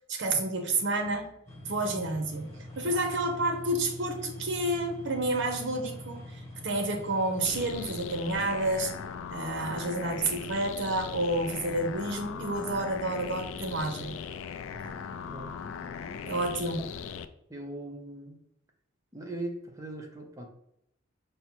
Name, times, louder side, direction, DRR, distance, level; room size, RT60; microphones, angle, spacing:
voice 1, 0.1-1.3 1.7-8.9 9.3-14.2 14.8-14.9 16.3-16.8, right 2 dB, 60° right, 4 dB, 0.7 m, -30 dB
sound 1, 1.5-7.9, left 1 dB, 15° left, 1.3 m, -44 dB
sound 2, 7.4-17.3, left 6 dB, 75° left, 0.3 m, -39 dB
voice 2, 17.5-18.4 19.1-20.5, right 1 dB, 15° right, 1 dB, 0.7 m, -40 dB
5.3 x 2.0 x 4.4 m, 0.79 s
head